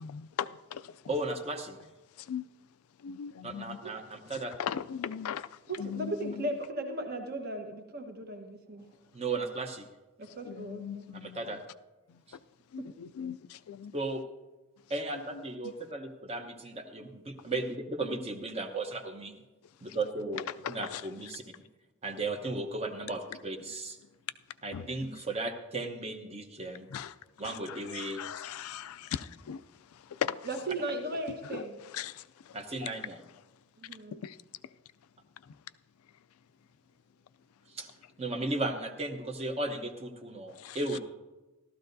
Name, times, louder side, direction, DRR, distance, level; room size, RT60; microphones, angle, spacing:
voice 1, 0.4-0.8 2.3-2.4 3.0-3.8 4.6-5.5 5.8-6.3 10.5-11.4 12.7-13.4 13.7-13.9 24.7-24.8 26.9-27.1 27.9-29.6 30.2-30.4 32.0-32.1 34.2-34.3 40.6-40.8, left 8 dB, 80° left, 0.4 m, -37 dB
voice 2, 1.1-1.8 3.4-4.5 9.1-9.9 11.2-11.6 12.3-12.4 13.9-14.2 14.9-19.4 19.8-21.4 22.0-24.0 24.6-26.9 27.4-28.2 32.5-33.2 37.7-37.9 38.2-41.0, right 2 dB, 30° right, 0.9 m, -35 dB
voice 3, 5.7-8.9 10.2-11.1 30.4-31.8 33.8-34.2, right 1 dB, 45° right, 1.2 m, -37 dB
15.5 x 13.0 x 2.7 m
head